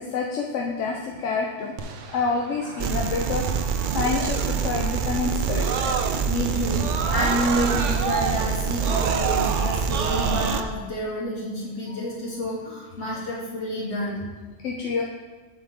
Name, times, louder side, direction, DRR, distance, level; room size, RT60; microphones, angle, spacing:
voice 1, 0.0-1.8 2.1-5.7 11.9-12.0 14.6-15.0, left 4 dB, 90° left, 0 dB, 1.1 m, -28 dB
Screaming, 1.8-6.4 6.7-10.6, right 5 dB, 85° right, 1.1 m, -31 dB
sound 1, 2.8-10.6, right 6 dB, 55° right, 0.6 m, -26 dB
voice 2, 5.5-5.9 6.3-14.4, equal, 70° left, -7 dB, 2.8 m, -29 dB
7.8 x 7.7 x 3.7 m, 1.3 s
omnidirectional pair, 1.2 m